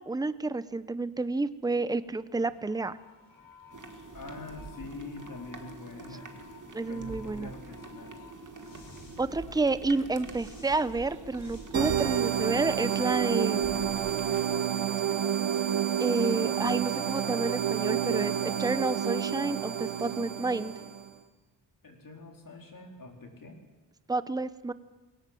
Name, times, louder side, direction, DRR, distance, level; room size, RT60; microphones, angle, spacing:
voice 1, 0.0-3.0 6.7-7.5 9.2-13.8 16.0-20.7 24.1-24.7, right 3 dB, 10° right, 15 dB, 0.7 m, -30 dB
sound 1, 1.7-14.1, left 4 dB, 80° left, 6.1 m, -55 dB
sound 2, 3.7-14.6, right 3 dB, 40° right, 2.2 m, -46 dB
voice 2, 4.1-6.3 6.9-8.2 21.8-23.6, left 3 dB, 45° left, 2 dB, 4.2 m, -44 dB
sound 3, 11.7-21.1, right 9 dB, 90° right, 1.6 m, -29 dB
22.0 x 18.0 x 7.7 m, 1.2 s
wide cardioid pair, 120°, 45 cm